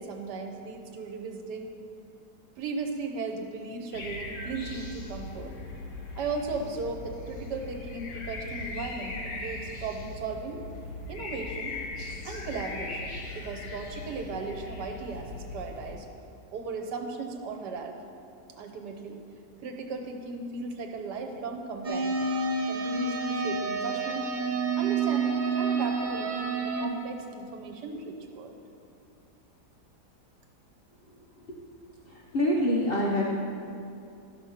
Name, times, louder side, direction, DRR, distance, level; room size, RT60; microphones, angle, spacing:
voice 1, 0.0-1.7 2.6-5.5 6.1-10.6 11.1-11.8 12.2-16.1 16.5-18.0 18.5-19.2 19.6-22.3 22.7-24.3 24.8-28.6, right 4 dB, 90° right, 4 dB, 1.5 m, -36 dB
sound 1, 3.9-16.0, left 2 dB, 85° left, 2.0 m, -39 dB
sound 2, 21.8-26.9, right 4 dB, 40° right, 0.7 m, -29 dB
voice 2, 32.1-33.2, left 1 dB, 40° left, -3 dB, 1.0 m, -26 dB
12.5 x 6.3 x 5.7 m, 2.6 s
omnidirectional pair, 1.8 m